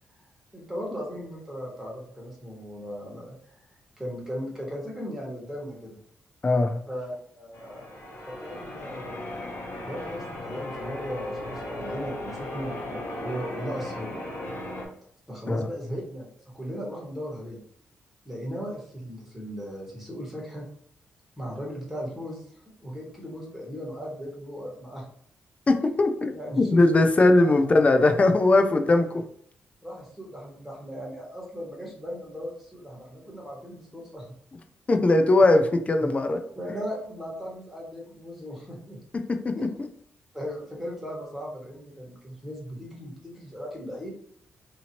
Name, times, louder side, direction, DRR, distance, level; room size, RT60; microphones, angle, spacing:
voice 1, 0.5-3.4 4.0-6.0 6.9-7.9 8.2-9.4 9.8-14.2 15.3-16.3 16.5-17.6 18.2-20.7 21.4-22.4 22.8-25.0 26.3-26.8 27.4-27.5 28.0-28.6 29.8-34.3 36.0-36.1 36.5-39.0 39.5-39.7 40.3-44.1, equal, 5° right, -3 dB, 1.5 m, -37 dB
voice 2, 6.4-6.8 15.5-15.6 25.7-29.2 34.9-36.4 39.1-39.6, left 2 dB, 30° left, 6 dB, 0.5 m, -20 dB
Church bell, 7.5-14.9, left 1 dB, 80° left, 1.0 m, -36 dB
2.8 x 2.7 x 2.8 m, 0.63 s
cardioid pair, 85°, 4 cm